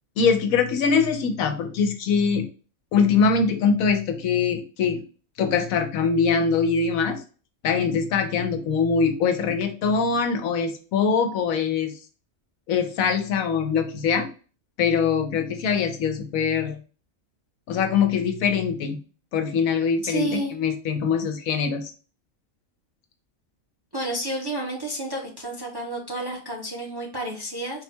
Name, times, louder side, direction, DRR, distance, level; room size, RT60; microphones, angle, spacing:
voice 1, 0.2-2.5 2.9-5.0 5.4-7.2 7.6-11.9 12.7-14.3 14.8-16.8 17.7-19.0 19.3-21.9, left 5 dB, 90° left, 6 dB, 1.1 m, -23 dB
voice 2, 20.0-20.5 23.9-27.8, right 2 dB, 25° right, -1 dB, 0.5 m, -30 dB
4.1 x 2.2 x 4.3 m, 0.37 s
omnidirectional pair, 1.4 m